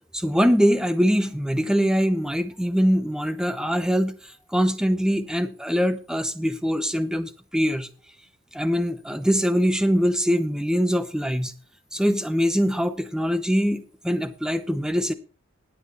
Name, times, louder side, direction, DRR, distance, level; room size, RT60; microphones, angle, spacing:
voice 1, 0.1-7.9 8.5-11.5 11.9-15.1, equal, 5° right, 0.9 m, -23 dB
20.0 x 8.1 x 3.0 m
head